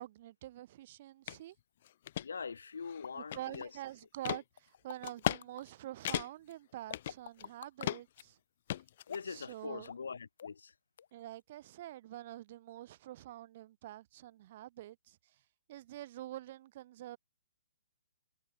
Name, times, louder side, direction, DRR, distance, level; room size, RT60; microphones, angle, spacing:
voice 1, 0.0-1.6 3.1-8.4 9.3-9.9 11.1-15.4 15.7-17.2, right 14 dB, 35° right, 6.1 m, -46 dB
sound 1, 1.3-1.4 1.9-2.3 2.8-3.7 4.3-4.4 5.0-5.4 5.7-5.8 6.1-6.5 6.9-7.5 7.8-8.2 8.7-9.5, left 12 dB, 40° left, 1.8 m, -36 dB
voice 2, 2.2-3.7 9.1-10.7, left 5 dB, 85° left, 6.9 m, -43 dB
sound 2, 3.0-3.1 3.6-3.7 4.6-5.6 6.9-7.9 9.1-9.4 9.8-10.1 10.4-10.7 11.0-11.1, left 8 dB, 55° left, 2.3 m, -47 dB
hypercardioid pair, 170°, 0 cm